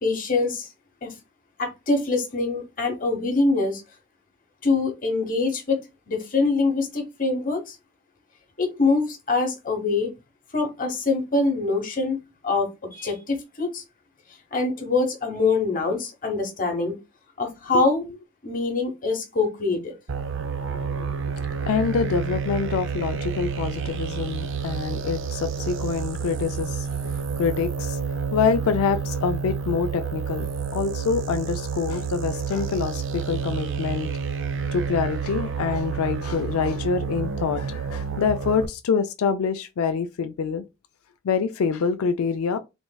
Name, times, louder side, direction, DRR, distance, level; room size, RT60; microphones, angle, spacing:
voice 1, 0.0-0.7 1.0-1.1 1.6-3.8 4.6-7.8 8.6-10.1 10.5-13.8 14.5-17.0 17.4-18.0 18.4-19.9, left 3 dB, 40° left, 1.0 m, -24 dB
sound 1, 20.1-38.7, right 6 dB, 60° right, 0.5 m, -29 dB
voice 2, 20.8-21.2 21.6-28.0 28.3-34.1 34.7-40.6 41.2-42.6, left 6 dB, 90° left, 0.4 m, -26 dB
3.4 x 3.2 x 2.2 m
head